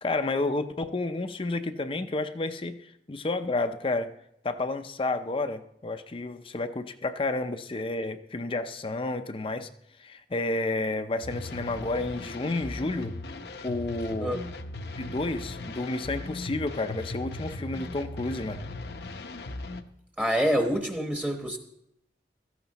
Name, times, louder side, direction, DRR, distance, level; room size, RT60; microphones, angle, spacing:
voice 1, 0.0-4.1 4.4-9.7 10.0-13.2 13.6-14.3 15.0-18.6, left 2 dB, 30° left, 8 dB, 0.5 m, -31 dB
sound 1, 11.2-19.8, left 2 dB, 65° left, 0.8 m, -38 dB
voice 2, 20.2-21.6, equal, 10° right, 3 dB, 1.0 m, -26 dB
16.5 x 14.0 x 2.9 m, 0.78 s
head